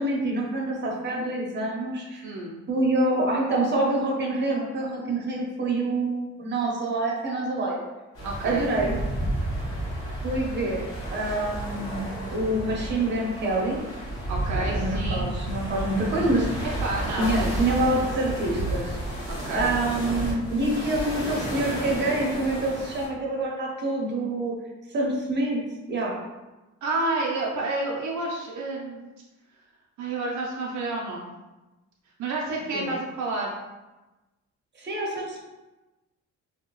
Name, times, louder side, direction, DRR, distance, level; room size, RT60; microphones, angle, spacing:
voice 1, 0.0-2.3 2.7-7.8 8.4-9.0 10.2-10.8 11.1-13.8 14.6-16.6 17.2-19.3 19.5-24.5 24.9-25.6 25.9-26.1 32.7-32.9 34.8-35.4, right 2 dB, 35° right, -2 dB, 0.8 m, -26 dB
voice 2, 2.2-2.6 8.2-8.7 14.3-15.3 16.8-17.5 19.3-19.7 26.8-29.0 30.0-31.3 32.2-33.5, right 2 dB, 75° right, -3 dB, 0.6 m, -30 dB
sound 1, 8.1-23.1, right 1 dB, 50° left, 1.3 m, -31 dB
2.7 x 2.2 x 2.9 m, 1.1 s
cardioid pair, 90°, 30 cm